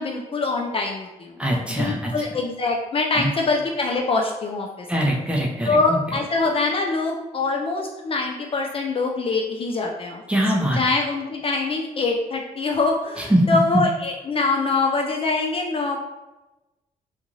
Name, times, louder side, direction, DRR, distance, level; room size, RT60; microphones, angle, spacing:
voice 1, 0.0-1.4 1.7-4.9 5.6-10.2 10.7-16.0, left 3 dB, 40° left, 1 dB, 0.4 m, -24 dB
voice 2, 1.4-2.1 3.1-3.3 4.9-6.0 10.3-10.8 13.3-13.4, right 1 dB, 10° right, -2 dB, 0.6 m, -22 dB
2.5 x 2.4 x 3.0 m, 1.0 s
cardioid pair, 85°, 15 cm